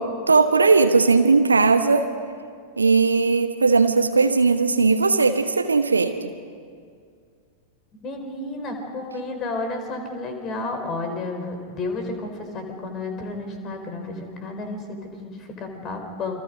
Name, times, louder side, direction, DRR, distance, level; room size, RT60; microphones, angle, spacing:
voice 1, 0.0-2.1 2.8-6.1, right 4 dB, 75° right, 9 dB, 1.0 m, -18 dB
voice 2, 8.0-16.4, left 2 dB, 30° left, 5 dB, 4.2 m, -31 dB
29.0 x 24.0 x 5.1 m, 2.2 s
figure-of-eight pair, 90°, 0 cm